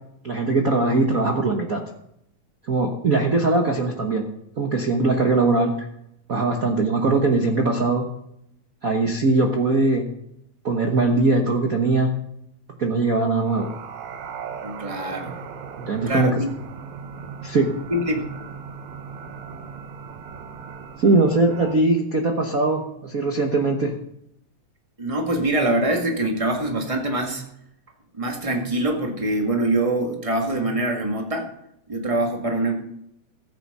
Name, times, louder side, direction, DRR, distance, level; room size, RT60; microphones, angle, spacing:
voice 1, 0.2-1.8 2.7-4.2 4.6-5.9 6.3-8.1 8.8-10.1 10.6-12.1 12.8-13.7 15.2-15.3 15.8-16.3 17.4-17.7 21.0-23.9, right 3 dB, 60° right, 3 dB, 0.9 m, -21 dB
sound 1, 13.4-21.8, right 6 dB, 75° right, 2.4 m, -38 dB
voice 2, 14.6-15.3 16.1-16.5 17.9-18.3 25.0-27.4 28.1-31.5 31.9-32.7, right 1 dB, 15° right, 2 dB, 1.3 m, -24 dB
15.0 x 9.0 x 5.5 m, 0.78 s
omnidirectional pair, 3.3 m